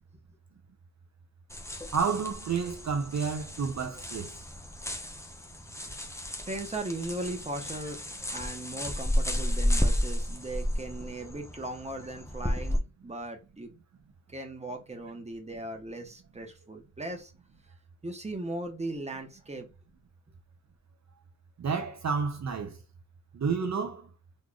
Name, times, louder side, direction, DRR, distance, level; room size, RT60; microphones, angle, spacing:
sound 1, 1.5-12.8, equal, 10° left, 0.7 m, -32 dB
voice 1, 1.9-4.3 21.6-22.8 23.3-24.1, right 5 dB, 60° right, 0.7 m, -30 dB
voice 2, 6.2-8.0 8.3-13.7 14.3-17.3 18.0-19.7, right 2 dB, 20° right, 1.0 m, -38 dB
3.8 x 3.1 x 2.4 m
wide cardioid pair, 130°, 32 cm